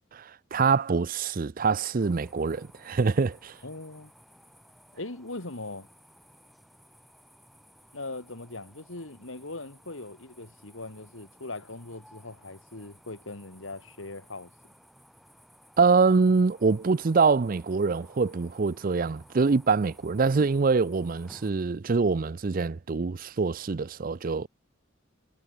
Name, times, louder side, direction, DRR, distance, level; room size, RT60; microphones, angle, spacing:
voice 1, 0.1-3.6 15.8-24.5, right 4 dB, 45° right, 0.5 m, -24 dB
sound 1, 2.0-21.5, equal, ahead, 7.1 m, -57 dB
voice 2, 3.6-4.1 4.9-5.9 7.9-14.5, left 2 dB, 75° left, 2.6 m, -40 dB
head